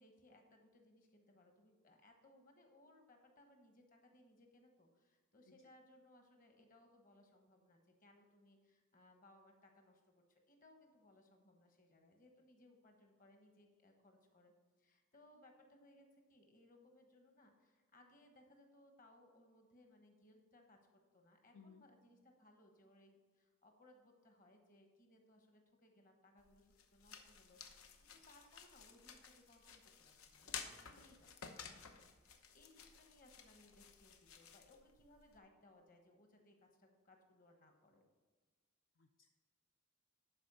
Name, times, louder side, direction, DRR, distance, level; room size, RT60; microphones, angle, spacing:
voice 1, 0.0-14.5 14.8-31.7 32.0-38.0, left 1 dB, 40° left, 3 dB, 1.2 m, -67 dB
voice 2, 21.5-21.9 39.0-39.3, left 5 dB, 60° left, 5 dB, 0.4 m, -62 dB
sound 1, 26.4-35.4, left 6 dB, 85° left, 0.9 m, -54 dB
11.5 x 4.4 x 5.6 m, 1.4 s
head